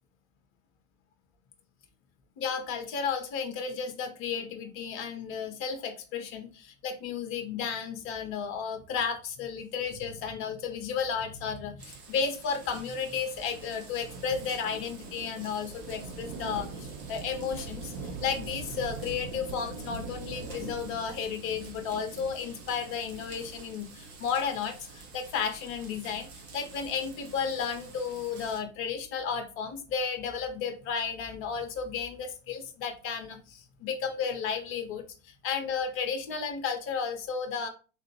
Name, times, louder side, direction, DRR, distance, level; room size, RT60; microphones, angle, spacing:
voice 1, 2.4-17.9 18.2-37.7, left 6 dB, 35° left, 6 dB, 0.8 m, -33 dB
sound 1, 11.8-28.6, right 4 dB, 35° right, 0.9 m, -43 dB
3.6 x 2.4 x 3.1 m, 0.35 s
figure-of-eight pair, 80°, 38 cm